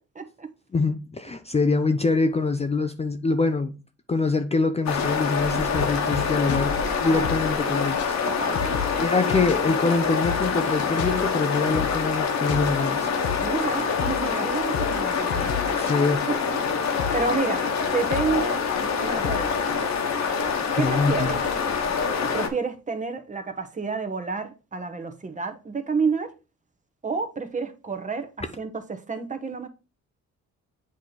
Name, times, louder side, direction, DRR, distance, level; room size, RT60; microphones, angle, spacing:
voice 1, 0.1-0.5 7.0-7.3 8.2-9.1 13.4-15.7 16.3-16.4 16.7-17.6 17.9-18.6 19.0-19.8 20.8-21.4 22.3-26.3 27.0-29.7, right 4 dB, 25° right, 1.0 m, -30 dB
voice 2, 0.7-3.8 4.1-8.2 9.0-13.1 15.8-16.3 20.8-21.3 21.8-22.0, left 3 dB, 20° left, 0.5 m, -24 dB
sound 1, 4.9-22.5, left 5 dB, 60° left, 1.3 m, -26 dB
sound 2, 5.0-7.7 8.0-8.1 8.4-16.7 17.0-21.8, left 7 dB, 85° left, 0.9 m, -35 dB
8.4 x 3.1 x 4.0 m
cardioid pair, 90°, 30 cm